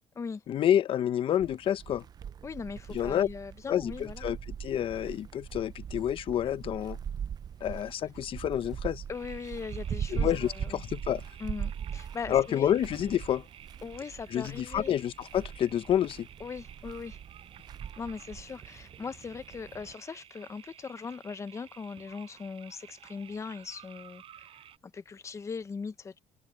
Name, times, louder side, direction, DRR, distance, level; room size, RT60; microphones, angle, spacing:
voice 1, 0.5-2.0 2.9-3.3 3.7-7.0 7.6-9.0 10.1-11.2 12.3-13.5 14.3-16.3, left 10 dB, 55° left, 0.9 m, -28 dB
sound 1, 1.4-20.0, right 8 dB, 40° right, 0.5 m, -40 dB
voice 2, 2.4-4.2 9.1-10.8 11.4-12.7 13.8-14.9 16.4-17.2 18.0-26.2, left 5 dB, 25° left, 0.9 m, -40 dB
sound 2, 9.1-24.8, right 10 dB, 60° right, 5.0 m, -53 dB
cardioid pair, 125°, 11 cm